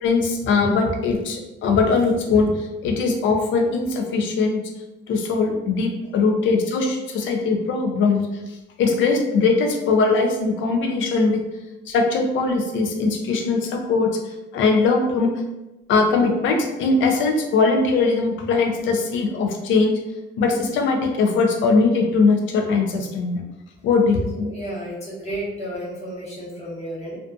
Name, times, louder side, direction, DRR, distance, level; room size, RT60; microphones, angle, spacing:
voice 1, 0.0-4.6 5.1-8.2 8.8-11.4 11.9-14.1 14.5-15.3 15.9-20.0 20.4-23.4 23.8-24.5, left 4 dB, 75° left, 3 dB, 0.5 m, -20 dB
voice 2, 24.5-27.2, right 1 dB, 35° left, -6 dB, 1.2 m, -32 dB
2.5 x 2.3 x 2.4 m, 1.0 s
cardioid pair, 90°, 20 cm